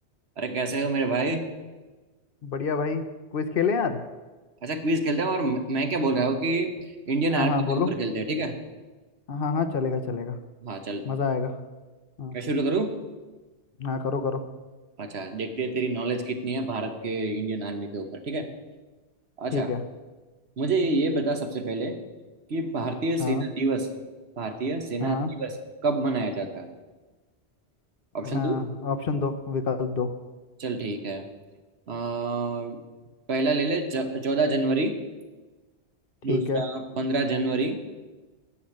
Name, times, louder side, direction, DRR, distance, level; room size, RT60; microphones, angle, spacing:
voice 1, 0.4-1.4 4.6-6.7 7.1-8.6 10.6-11.0 12.3-12.9 15.0-18.5 19.4-19.7 20.6-21.9 22.5-23.9 24.4-25.5 25.8-26.7 28.1-28.6 30.6-31.3 31.9-32.8 33.3-34.9 36.2-37.8, right 2 dB, 65° right, 7 dB, 1.3 m, -27 dB
voice 2, 2.4-3.0 3.3-4.0 7.3-7.9 9.3-10.4 11.0-11.6 12.2-12.4 13.8-14.4 19.5-19.8 23.2-23.4 25.0-25.3 28.2-30.1 36.3-36.6, left 5 dB, 55° left, 10 dB, 0.9 m, -27 dB
9.8 x 6.5 x 8.6 m, 1.2 s
omnidirectional pair, 1.2 m